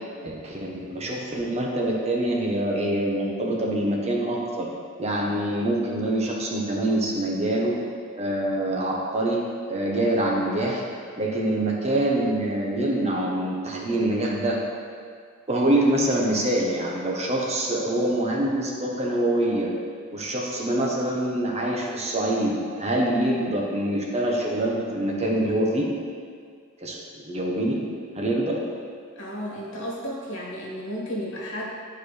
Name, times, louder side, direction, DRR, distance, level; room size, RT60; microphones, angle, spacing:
voice 1, 0.2-4.7 5.0-7.8 8.2-10.8 11.2-14.6 15.5-19.7 20.1-25.9 26.8-27.8 28.1-28.6, right 1 dB, 30° right, -2 dB, 1.1 m, -25 dB
voice 2, 29.2-31.7, equal, 60° left, -4 dB, 1.8 m, -33 dB
12.0 x 4.5 x 3.3 m, 2.1 s
head